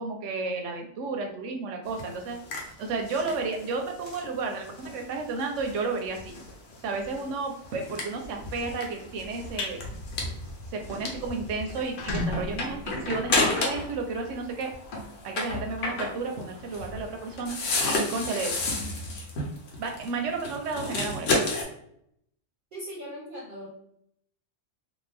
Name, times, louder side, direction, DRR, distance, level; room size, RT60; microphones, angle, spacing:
voice 1, 0.0-2.4 2.8-6.3 6.8-9.8 10.7-14.7 15.2-17.6 17.9-18.5 19.8-21.3, right 3 dB, 85° right, 3 dB, 0.9 m, -32 dB
sound 1, 1.8-14.0 14.3-21.6, left 2 dB, 85° left, 1.1 m, -32 dB
sound 2, 9.4-9.7 10.2-10.4 10.8-10.9 11.1-11.2 11.7-14.3, left 2 dB, 55° left, 0.7 m, -34 dB
voice 2, 22.7-23.7, equal, 50° right, -4 dB, 0.7 m, -39 dB
2.6 x 2.3 x 3.2 m, 0.71 s
omnidirectional pair, 1.2 m